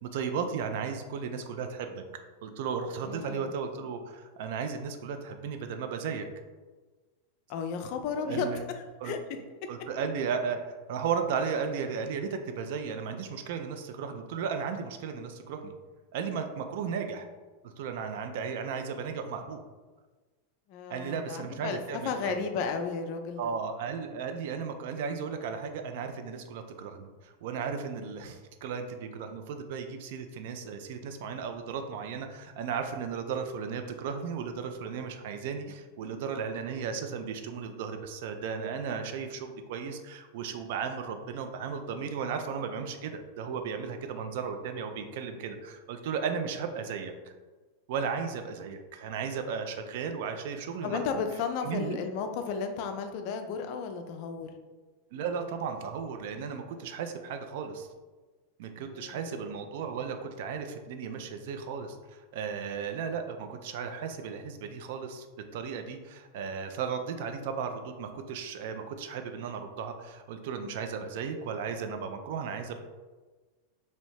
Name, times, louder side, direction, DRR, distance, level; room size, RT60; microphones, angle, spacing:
voice 1, 0.0-2.0 2.4-6.3 8.2-8.6 9.0-9.1 9.7-10.6 10.9-15.7 16.1-17.3 17.6-19.6 20.9-22.3 23.4-47.1 47.9-51.2 51.6-52.0 55.1-57.9 58.6-65.3 65.5-72.7, right 6 dB, 50° right, 7 dB, 0.3 m, -35 dB
voice 2, 3.0-3.5 7.5-8.5 8.8-9.2 20.7-23.4 50.8-54.6 58.8-59.4, left 6 dB, 45° left, 6 dB, 0.3 m, -34 dB
3.0 x 2.7 x 3.1 m, 1.3 s
figure-of-eight pair, 90°, 0 cm